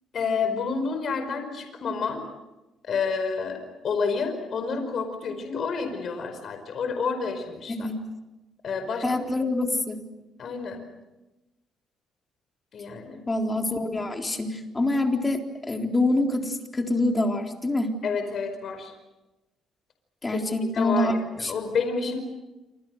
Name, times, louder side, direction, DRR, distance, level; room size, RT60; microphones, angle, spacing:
voice 1, 0.1-2.2 2.8-7.9 8.6-9.2 10.4-10.8 12.7-13.2 18.0-18.9 20.3-20.4 20.7-22.2, left 5 dB, 55° left, 7 dB, 5.0 m, -29 dB
voice 2, 9.0-10.0 13.3-17.9 20.2-21.1 21.4-21.5, left 2 dB, 20° left, 3 dB, 3.9 m, -26 dB
28.0 x 26.5 x 6.6 m, 1.0 s
cardioid pair, 105°, 0 cm